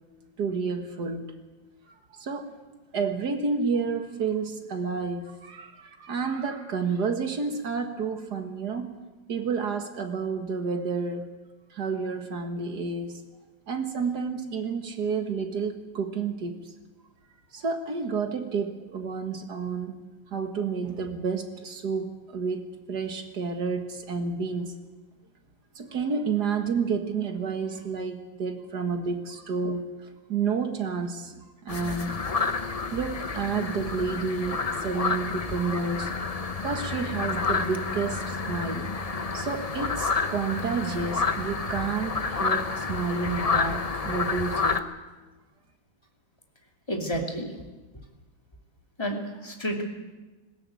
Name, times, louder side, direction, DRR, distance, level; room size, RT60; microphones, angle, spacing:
voice 1, 0.4-1.3 2.2-2.6 2.9-8.9 9.3-11.3 11.7-13.1 13.7-16.5 17.5-20.0 20.3-24.7 25.8-29.9 30.3-32.2 32.9-36.1 36.6-38.9 39.3-44.8, right 5 dB, 60° right, 6 dB, 2.2 m, -30 dB
sound 1, 31.7-44.8, left 4 dB, 40° left, 0.5 m, -29 dB
voice 2, 46.9-47.5 49.0-49.2 49.4-49.8, equal, 15° left, 1 dB, 2.7 m, -29 dB
20.0 x 17.0 x 8.6 m, 1.2 s
omnidirectional pair, 2.1 m